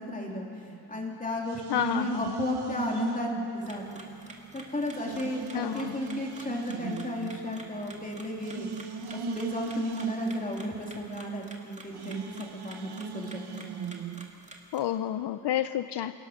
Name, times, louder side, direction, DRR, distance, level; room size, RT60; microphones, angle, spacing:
voice 1, 0.0-4.1 4.5-8.7 9.1-13.6, left 1 dB, 20° left, -1 dB, 3.1 m, -34 dB
sound 1, 0.7-4.5 4.9-14.3, right 7 dB, 65° right, 1.2 m, -39 dB
voice 2, 1.7-2.3 5.5-6.0 14.7-16.1, left 10 dB, 70° left, 11 dB, 0.6 m, -30 dB
sound 2, 3.6-14.8, right 2 dB, 15° right, 2.1 m, -50 dB
28.5 x 18.0 x 6.4 m, 2.5 s
wide cardioid pair, 170°, 43 cm